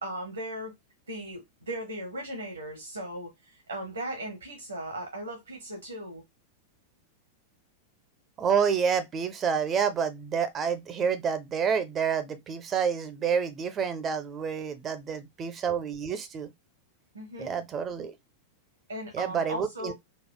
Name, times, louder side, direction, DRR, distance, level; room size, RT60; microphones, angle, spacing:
voice 1, 0.0-0.7 1.1-6.2 17.1-17.6 18.9-19.9, right 1 dB, 80° right, 1.0 m, -37 dB
voice 2, 8.4-16.5 17.4-18.1 19.1-19.9, right 7 dB, 25° right, 0.6 m, -28 dB
4.2 x 2.3 x 2.2 m
figure-of-eight pair, 90°, 0 cm